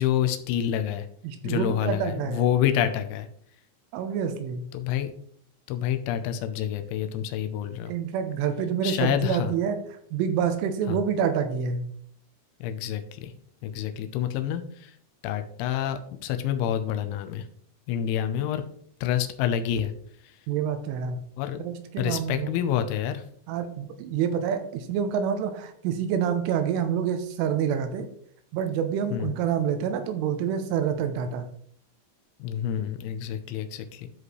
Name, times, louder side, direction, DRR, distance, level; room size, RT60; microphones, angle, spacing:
voice 1, 0.0-1.1 1.4-3.3 4.7-5.1 5.7-7.9 8.8-9.5 10.9-11.0 12.6-13.3 13.6-14.9 15.2-17.4 17.9-18.6 19.0-19.9 21.4-21.6 22.0-23.2 29.1-29.3 32.4-34.1, left 10 dB, 85° left, 8 dB, 3.0 m, -28 dB
voice 2, 1.2-2.4 3.9-4.7 7.9-9.8 10.1-11.8 20.5-21.3 21.6-22.5 23.5-28.1 28.5-31.5, right 8 dB, 85° right, 8 dB, 3.3 m, -27 dB
13.0 x 5.0 x 3.2 m, 0.62 s
omnidirectional pair, 5.7 m